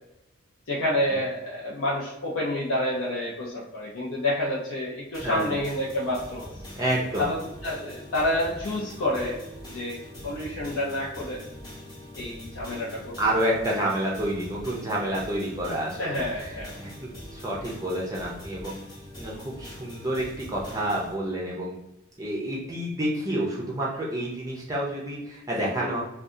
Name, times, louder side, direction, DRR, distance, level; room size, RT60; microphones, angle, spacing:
voice 1, 0.7-6.5 7.2-9.4 9.7-11.4 12.1-13.2 16.0-16.8 25.8-26.0, left 1 dB, 75° left, -7 dB, 0.7 m, -29 dB
sound 1, 5.1-21.1, equal, 20° left, 0.8 m, -43 dB
voice 2, 5.2-5.5 6.7-7.3 10.2-10.3 13.2-18.8 19.2-21.8 22.2-26.0, right 1 dB, 15° right, -4 dB, 0.5 m, -29 dB
2.7 x 2.3 x 3.6 m, 0.92 s
head